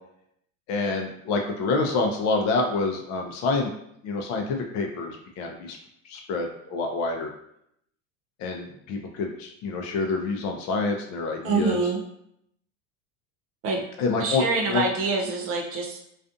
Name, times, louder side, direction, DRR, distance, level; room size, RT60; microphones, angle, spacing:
voice 1, 0.7-3.7 4.0-5.8 6.0-7.3 8.4-11.8 14.0-14.8, left 3 dB, 50° left, 2 dB, 0.5 m, -27 dB
voice 2, 11.4-12.0 13.6-13.8 14.2-16.0, right 4 dB, 40° right, 0 dB, 0.4 m, -25 dB
2.4 x 2.4 x 2.5 m, 0.74 s
supercardioid pair, 135°, 38 cm